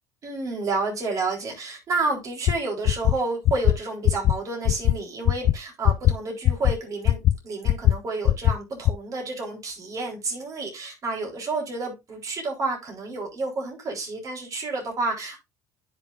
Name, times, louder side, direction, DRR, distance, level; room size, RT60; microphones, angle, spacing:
voice 1, 0.2-15.4, right 3 dB, 40° right, 3.8 m, -30 dB
sound 1, 2.5-2.6 2.8-3.1 3.4-3.7 4.0-4.3 4.6-4.9 5.2-5.5 5.8-6.1 6.4-6.7 7.0-7.3 7.6-7.9 8.2-8.5 8.8-8.9, left 13 dB, 55° left, 0.5 m, -18 dB
9.4 x 6.1 x 2.6 m
supercardioid pair, 80°, 8 cm